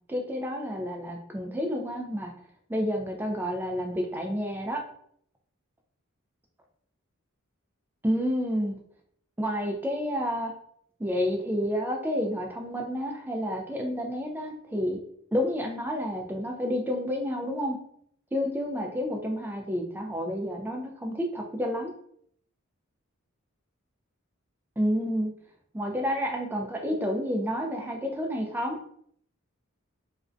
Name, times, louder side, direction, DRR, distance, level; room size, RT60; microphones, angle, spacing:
voice 1, 0.1-2.3 2.7-4.8 8.0-8.8 9.4-10.5 11.0-15.0 15.3-17.8 18.3-21.9 24.8-25.3 25.7-28.8, equal, 10° right, 1 dB, 0.3 m, -29 dB
2.5 x 2.1 x 2.4 m, 0.67 s
head